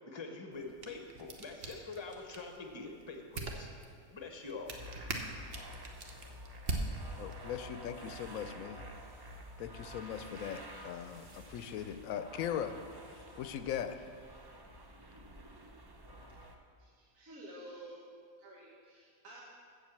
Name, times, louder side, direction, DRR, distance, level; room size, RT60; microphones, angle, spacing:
voice 1, 0.1-3.7 4.1-4.8, left 3 dB, 25° left, 3 dB, 0.9 m, -45 dB
sound 1, 0.5-7.6, right 3 dB, 50° right, 1.0 m, -43 dB
sound 2, 4.7-16.5, equal, 30° right, 0.4 m, -50 dB
voice 2, 7.2-8.9 9.6-12.8 13.4-14.1, left 9 dB, 85° left, 10 dB, 1.0 m, -39 dB
voice 3, 16.8-18.0 18.4-19.4, right 1 dB, 75° right, -5 dB, 1.9 m, -51 dB
7.6 x 7.5 x 7.5 m, 2.1 s
omnidirectional pair, 1.4 m